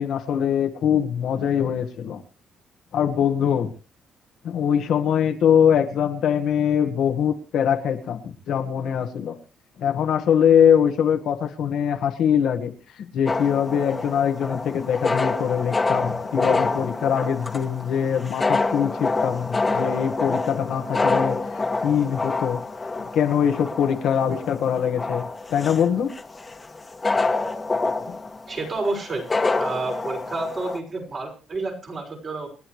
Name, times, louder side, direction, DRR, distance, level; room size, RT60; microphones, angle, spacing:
voice 1, 0.0-2.2 2.9-3.7 4.4-9.4 9.8-12.7 13.0-22.6 23.1-26.1 28.1-28.2, left 8 dB, 75° left, 5 dB, 1.6 m, -22 dB
sound 1, 13.3-30.8, left 3 dB, 25° left, 1.7 m, -27 dB
voice 2, 28.5-29.3 29.6-32.5, right 3 dB, 45° right, 1 dB, 5.8 m, -29 dB
28.0 x 10.0 x 3.2 m, 0.36 s
cardioid pair, 90°, 0 cm